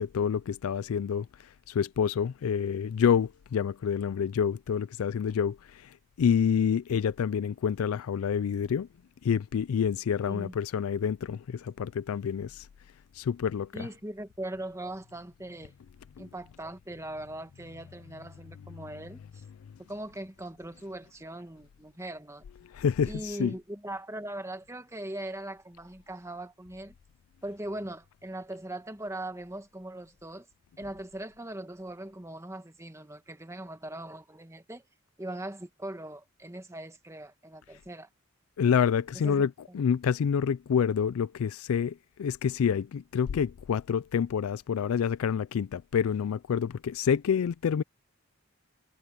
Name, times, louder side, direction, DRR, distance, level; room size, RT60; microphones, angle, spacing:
voice 1, 0.0-8.9 9.2-12.7 13.1-13.9 16.2-16.3 18.1-18.2 18.6-18.9 22.6-23.5 38.6-47.8, left 7 dB, 85° left, 0.4 m, -28 dB
voice 2, 13.7-15.7 16.2-19.4 19.9-22.4 23.0-26.9 27.4-30.5 30.8-34.8 35.2-38.1 39.2-39.5, right 1 dB, 15° right, 1.7 m, -40 dB
head